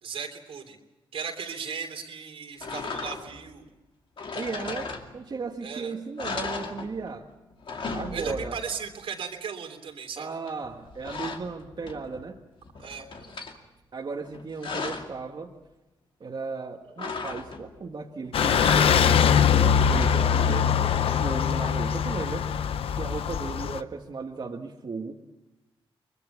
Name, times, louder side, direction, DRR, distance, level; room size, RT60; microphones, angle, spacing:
voice 1, 0.0-0.8 1.1-3.6 5.6-5.9 7.8-10.4 12.8-13.3, right 6 dB, 85° right, 3 dB, 3.3 m, -37 dB
sound 1, 2.6-3.5 4.2-5.4 5.8-5.9 6.2-7.2 7.5-8.8 10.5-12.2 12.6-13.6 14.2-15.2 17.0-17.8 18.2-19.3 19.7-21.5, left 4 dB, 65° left, 2.4 m, -36 dB
voice 2, 4.3-7.3 7.8-8.6 10.2-12.4 13.9-15.5 16.2-22.5 23.0-25.2, right 4 dB, 55° right, 1 dB, 1.7 m, -36 dB
sound 2, 18.3-23.8, left 8 dB, 85° left, 0.7 m, -22 dB
23.5 x 22.0 x 7.2 m, 1.0 s
cardioid pair, 70°, 9 cm